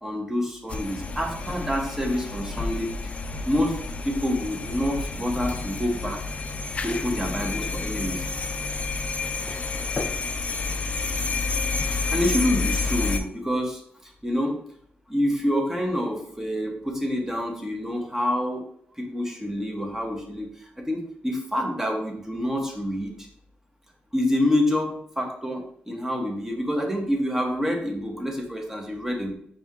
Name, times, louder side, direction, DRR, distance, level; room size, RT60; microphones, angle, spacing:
voice 1, 0.0-2.9 3.5-6.4 6.8-8.3 11.9-14.6 15.1-18.6 19.0-23.3 24.1-29.4, left 1 dB, 10° right, 1 dB, 0.9 m, -27 dB
sound 1, 0.7-13.2, left 4 dB, 35° left, 0.4 m, -29 dB
4.3 x 2.7 x 3.6 m, 0.67 s
cardioid pair, 80°, 4 cm